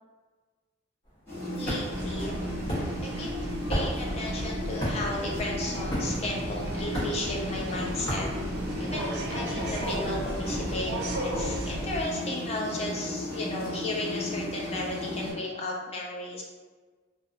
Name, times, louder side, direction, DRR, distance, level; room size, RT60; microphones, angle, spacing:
sound 1, 1.0-9.2, equal, 60° left, 1.1 m, -34 dB
sound 2, 1.3-15.3, left 1 dB, 15° left, 1.0 m, -35 dB
voice 1, 1.5-2.4 3.0-8.3 8.8-16.4, left 1 dB, 30° left, -2 dB, 0.4 m, -34 dB
sound 3, 1.9-12.0, right 1 dB, 55° right, 0.4 m, -35 dB
2.4 x 2.3 x 2.6 m, 1.4 s
head